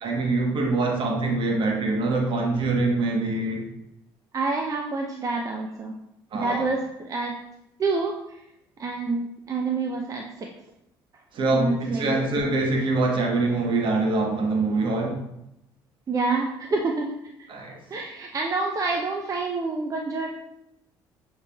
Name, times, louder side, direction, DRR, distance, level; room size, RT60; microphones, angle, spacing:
voice 1, 0.0-3.7 6.3-6.7 11.3-15.2 17.5-17.8, right 3 dB, 60° right, 2 dB, 1.0 m, -24 dB
voice 2, 4.3-5.9 6.3-7.3 7.8-8.4 8.8-10.5 11.5-12.2 16.1-17.1 17.4-17.5 17.9-20.3, right 3 dB, 35° right, 1 dB, 0.5 m, -27 dB
6.5 x 3.2 x 2.3 m, 0.83 s
supercardioid pair, 65°, 10 cm